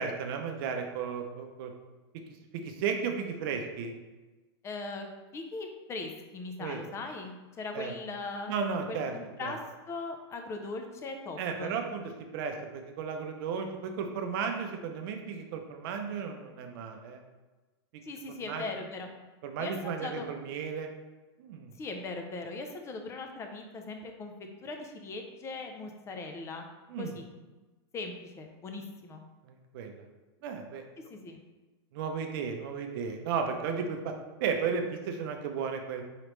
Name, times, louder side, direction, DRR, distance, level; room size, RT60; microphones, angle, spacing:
voice 1, 0.0-1.7 2.5-4.0 6.6-6.8 7.7-7.9 8.5-9.1 9.4-9.6 11.4-12.0 12.3-17.2 18.5-18.6 19.4-20.9 21.4-21.7 26.9-27.2 29.5-30.0 30.4-30.8 31.9-34.1 34.4-36.0, right 6 dB, 55° right, 5 dB, 0.6 m, -34 dB
voice 2, 4.6-8.5 8.9-9.6 9.9-11.8 18.0-19.1 19.6-20.3 21.7-26.7 27.0-27.3 27.9-29.2 31.1-31.4, left 3 dB, 20° left, 4 dB, 0.5 m, -39 dB
4.9 x 3.2 x 3.1 m, 1.2 s
supercardioid pair, 135°, 14 cm